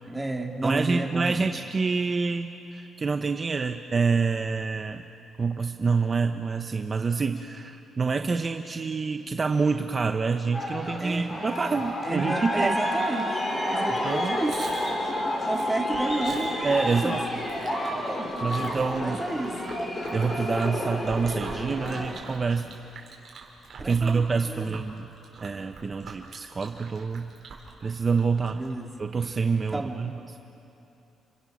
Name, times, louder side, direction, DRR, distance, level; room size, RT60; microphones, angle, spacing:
voice 1, 0.1-1.4 11.0-11.3 12.0-14.6 15.5-16.5 16.8-17.2 18.2-18.7 19.0-19.8 23.8-24.8 28.5-28.9 29.7-30.0, right 2 dB, 10° right, 2 dB, 2.7 m, -32 dB
voice 2, 0.6-5.0 5.4-12.8 14.0-14.4 16.6-17.2 18.4-19.2 20.1-22.7 23.8-25.1 25.4-27.3 27.8-28.6 29.0-30.2, right 4 dB, 35° right, 6 dB, 1.1 m, -27 dB
Aircraft, 10.5-22.2, left 1 dB, 30° left, 6.6 m, -30 dB
Chewing mastication, 14.0-28.7, right 4 dB, 55° right, 5.3 m, -45 dB
30.0 x 26.5 x 6.4 m, 2.8 s
cardioid pair, 90°, 0 cm